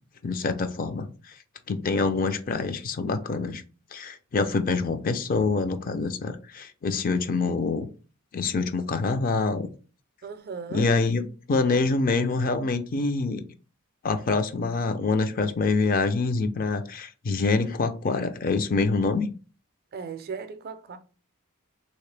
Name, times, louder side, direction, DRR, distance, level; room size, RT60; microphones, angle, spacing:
voice 1, 0.2-1.3 1.7-3.6 3.9-7.9 8.3-9.7 10.7-11.2 11.5-13.4 14.0-19.3, left 4 dB, 40° left, 0.4 m, -26 dB
voice 2, 10.2-10.9 19.9-21.0, right 5 dB, 45° right, 0.4 m, -37 dB
3.3 x 2.8 x 3.2 m
head